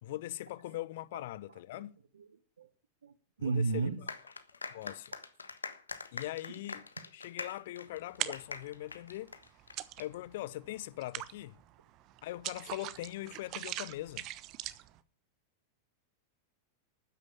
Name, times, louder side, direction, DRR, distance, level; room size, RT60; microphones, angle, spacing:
voice 1, 0.0-2.0 3.4-3.9 4.7-5.1 6.1-9.4 10.0-11.6 12.2-14.3, left 15 dB, 55° left, 0.7 m, -41 dB
voice 2, 1.5-1.8 2.1-2.3 2.6-2.7 3.0-4.0, right 4 dB, 70° right, 1.2 m, -34 dB
sound 1, 4.1-10.0, left 4 dB, 75° left, 1.3 m, -44 dB
sound 2, 8.0-8.7 9.1-10.4 10.7-15.0, right 15 dB, 40° right, 1.1 m, -41 dB
13.0 x 9.7 x 8.6 m
figure-of-eight pair, 90°, 0 cm